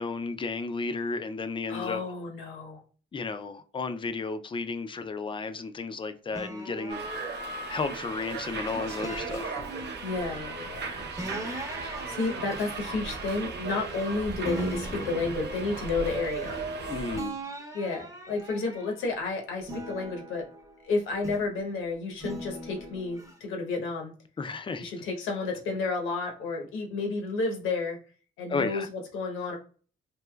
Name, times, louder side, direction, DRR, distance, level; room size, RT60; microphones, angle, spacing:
voice 1, 0.0-2.0 3.1-7.3 7.7-9.5 16.9-17.4 24.4-24.9 28.5-28.9, left 4 dB, 25° left, 0.3 m, -33 dB
voice 2, 1.7-2.8 10.0-11.1 12.1-16.6 17.7-20.4 20.8-24.1 24.8-28.0 28.4-29.6, left 3 dB, 90° left, 0.9 m, -31 dB
sound 1, 6.3-8.5 9.0-10.4 11.2-14.1 14.4-16.8 17.1-19.2 19.6-21.6 22.2-23.3, right 1 dB, 15° right, 0.7 m, -41 dB
Subway metro underground, 6.9-17.2, right 4 dB, 60° right, 0.7 m, -36 dB
3.2 x 2.9 x 2.2 m
cardioid pair, 90°, 20 cm